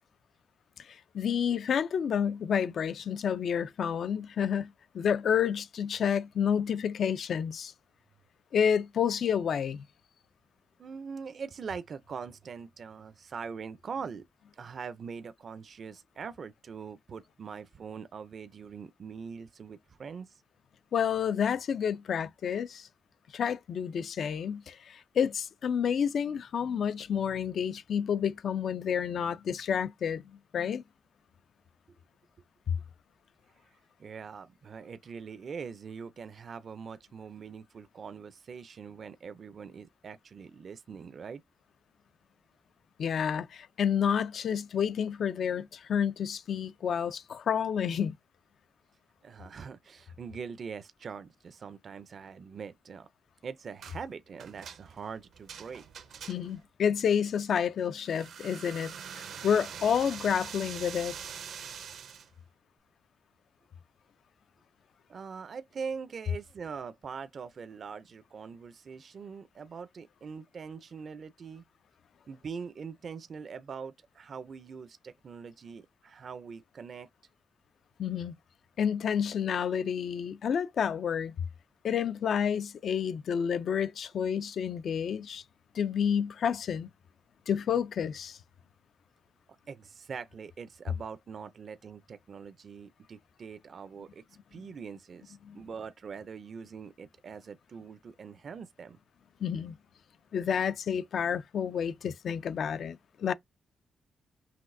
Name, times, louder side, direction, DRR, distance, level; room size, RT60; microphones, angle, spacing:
voice 1, 0.8-4.7 4.9-7.7 8.5-9.8 20.9-22.9 23.3-30.2 30.5-30.8 32.7-32.8 43.0-48.2 56.3-61.2 78.0-78.3 78.8-81.4 81.8-85.4 85.7-86.9 87.5-88.4 95.5-95.6 99.4-99.8 100.3-103.3, left 7 dB, 65° left, 0.4 m, -29 dB
voice 2, 10.8-14.2 14.5-20.4 33.6-41.4 49.2-53.1 53.4-55.8 65.1-71.6 72.3-77.1 89.7-94.2 94.5-99.0, right 6 dB, 50° right, 0.4 m, -43 dB
sound 1, 53.8-54.0 54.4-56.7 58.0-62.3, right 7 dB, 80° right, 0.7 m, -44 dB
5.8 x 2.6 x 2.5 m
cardioid pair, 110°, 0 cm